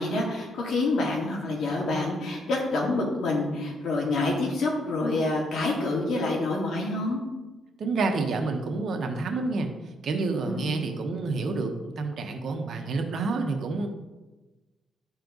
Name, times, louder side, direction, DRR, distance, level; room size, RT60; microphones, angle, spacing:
voice 1, 0.0-7.2 10.4-10.8, left 2 dB, 70° left, -2 dB, 2.4 m, -27 dB
voice 2, 7.8-9.7 10.0-13.9, right 3 dB, 60° right, 4 dB, 1.2 m, -28 dB
12.0 x 4.4 x 4.0 m, 1.2 s
cardioid pair, 100°, 0 cm